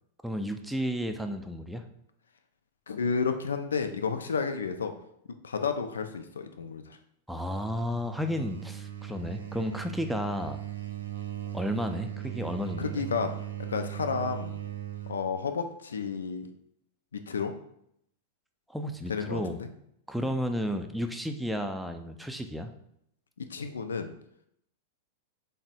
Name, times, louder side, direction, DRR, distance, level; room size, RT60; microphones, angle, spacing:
voice 1, 0.2-1.8 7.3-10.6 11.5-13.0 18.7-19.6 20.1-22.7, equal, ahead, 6 dB, 0.3 m, -32 dB
voice 2, 2.9-4.9 5.4-7.0 12.8-13.3 13.7-14.6 15.1-16.5 17.1-17.5 19.1-19.7 20.2-20.3 23.4-24.1, left 5 dB, 85° left, 7 dB, 0.3 m, -31 dB
sound 1, 7.5-15.3, right 12 dB, 90° right, 0.4 m, -38 dB
3.5 x 2.0 x 4.1 m, 0.74 s
hypercardioid pair, 110°, 0 cm